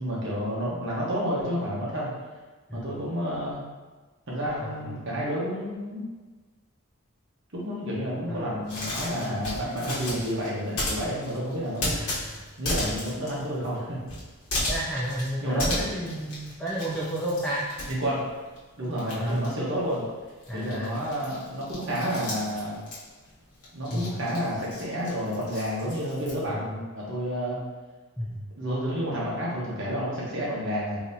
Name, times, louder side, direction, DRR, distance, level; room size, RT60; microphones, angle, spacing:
voice 1, 0.0-2.1 2.7-3.6 4.3-6.0 7.5-12.1 12.6-14.0 15.4-16.1 17.9-18.2 18.8-20.0 20.5-22.8 23.7-27.6 28.6-31.0, equal, 55° right, -5 dB, 1.1 m, -30 dB
voice 2, 8.3-8.8 11.9-12.4 14.7-17.7 19.2-19.4 20.5-21.0 23.9-24.1 26.5-26.8 28.2-28.4, right 1 dB, 5° left, -8 dB, 0.4 m, -32 dB
sound 1, 8.6-18.6 18.9-26.4, left 1 dB, 85° left, 1.1 m, -34 dB
3.8 x 2.9 x 2.7 m, 1.3 s
head